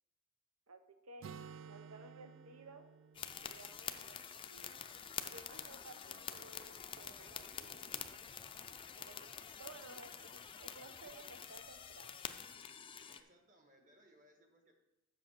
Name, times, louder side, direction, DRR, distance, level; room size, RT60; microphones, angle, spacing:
voice 1, 0.7-1.3 1.7-2.9 3.4-4.2 4.5-4.8 5.2-7.9 9.0-12.3, right 3 dB, 85° right, 8 dB, 0.9 m, -56 dB
Acoustic guitar, 1.2-4.9, right 6 dB, 60° right, 0.4 m, -54 dB
sound 1, 3.1-13.2, left 7 dB, 25° left, 0.4 m, -47 dB
voice 2, 13.1-14.7, equal, 40° right, 3 dB, 1.5 m, -67 dB
7.8 x 6.7 x 6.0 m, 0.96 s
head